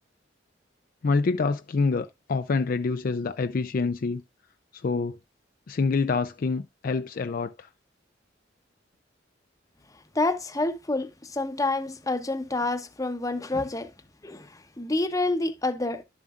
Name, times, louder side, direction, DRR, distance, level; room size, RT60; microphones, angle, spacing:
voice 1, 1.0-4.2 4.7-5.2 5.7-7.7, left 4 dB, 45° left, 0.4 m, -26 dB
voice 2, 10.1-13.9 14.2-16.0, left 2 dB, 20° left, 0.8 m, -28 dB
12.0 x 7.1 x 2.4 m
head